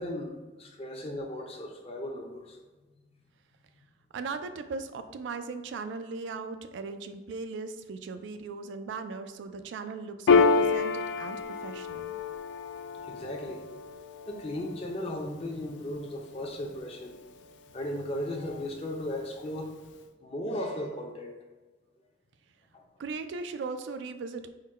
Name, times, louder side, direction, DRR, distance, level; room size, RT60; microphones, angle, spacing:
voice 1, 0.0-2.6 13.0-13.7 14.3-17.2 17.7-19.7 20.2-21.4 22.7-22.8, left 1 dB, 35° left, 2 dB, 0.5 m, -36 dB
voice 2, 4.1-12.2 23.0-24.5, right 4 dB, 85° right, 10 dB, 0.3 m, -38 dB
Piano, 10.3-17.2, left 4 dB, 85° left, 0.3 m, -29 dB
3.8 x 2.2 x 4.1 m, 1.2 s
head